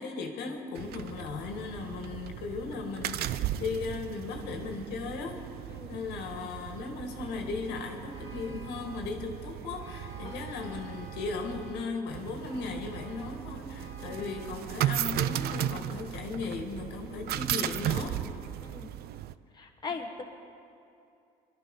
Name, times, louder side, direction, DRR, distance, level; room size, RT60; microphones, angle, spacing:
voice 1, 0.0-5.4 5.9-18.2, left 4 dB, 90° left, 3 dB, 1.9 m, -37 dB
sound 1, 0.8-19.3, right 12 dB, 70° right, 0.5 m, -36 dB
Vehicle horn car horn honking, 8.1-9.0 9.8-11.9 12.5-13.3 13.7-14.6 15.2-15.8, right 2 dB, 20° right, 2.0 m, -51 dB
voice 2, 18.6-18.9 19.5-20.2, left 4 dB, 25° left, 2 dB, 1.4 m, -40 dB
21.5 x 12.0 x 5.4 m, 2.6 s
cardioid pair, 110°, 17 cm